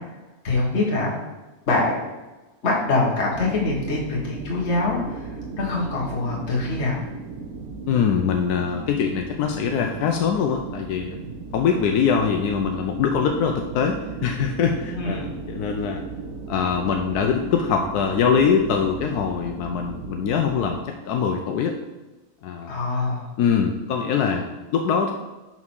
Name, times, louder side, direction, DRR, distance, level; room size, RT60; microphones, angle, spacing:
voice 1, 0.4-1.1 1.7-2.0 2.6-5.3 5.6-7.0 14.9-15.3 22.7-23.3, left 3 dB, 45° left, -4 dB, 1.8 m, -24 dB
sound 1, 3.3-20.8, right 4 dB, 70° right, 1.3 m, -36 dB
voice 2, 7.9-11.2 11.5-16.0 16.5-21.8 22.4-22.7 23.4-25.1, left 6 dB, 85° left, 3 dB, 1.2 m, -23 dB
6.1 x 4.4 x 6.1 m, 1.1 s
omnidirectional pair, 1.6 m